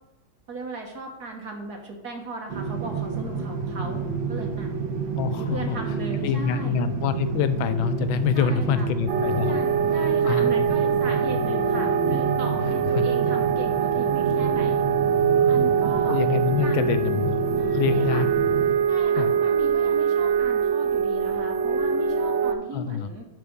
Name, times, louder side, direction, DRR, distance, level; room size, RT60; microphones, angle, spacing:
voice 1, 0.5-4.0 4.3-4.7 5.4-6.8 8.3-8.9 9.4-14.8 15.5-16.2 16.6-16.8 17.6-18.2 18.9-23.3, right 2 dB, 55° right, 3 dB, 1.7 m, -37 dB
sound 1, 2.5-18.7, right 5 dB, 70° right, 1.6 m, -30 dB
voice 2, 5.2-5.8 6.2-9.6 10.2-10.7 12.9-13.0 16.1-17.4 17.7-18.3 19.1-19.3 22.7-23.1, left 8 dB, 80° left, 11 dB, 1.4 m, -26 dB
sound 2, 9.1-22.5, right 7 dB, 90° right, 1.6 m, -23 dB
11.5 x 4.1 x 5.1 m, 0.92 s
omnidirectional pair, 2.2 m